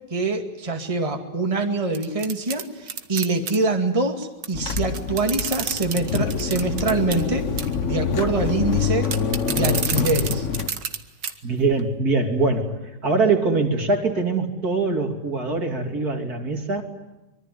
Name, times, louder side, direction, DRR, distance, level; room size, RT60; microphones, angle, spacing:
voice 1, 0.1-7.5 7.8-9.1 9.5-10.5, right 3 dB, 20° right, 3 dB, 2.2 m, -24 dB
sound 1, 1.9-3.6 4.4-4.5 4.7-7.2 7.6-7.8 9.0-11.0 11.2-11.3 11.8-11.9, right 7 dB, 75° right, 2.2 m, -29 dB
sound 2, 4.5-10.7, left 6 dB, 45° left, 1.4 m, -26 dB
voice 2, 11.4-12.8 13.0-16.8, right 3 dB, 55° right, 4 dB, 3.3 m, -23 dB
25.0 x 23.5 x 9.3 m, 1.0 s
omnidirectional pair, 1.9 m